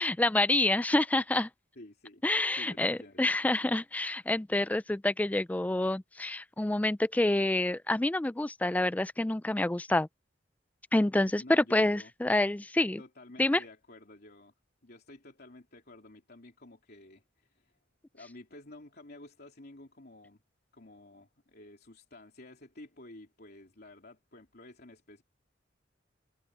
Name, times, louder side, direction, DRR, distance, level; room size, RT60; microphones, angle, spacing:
voice 1, 0.0-1.5 2.2-10.1 10.9-13.0 13.4-13.6, left 2 dB, 10° left, 0.3 m, -27 dB
voice 2, 1.7-2.2 2.6-3.4 11.4-12.1 13.0-14.5 14.8-17.8 18.1-20.4 20.7-25.2, left 1 dB, 55° left, 3.4 m, -51 dB
head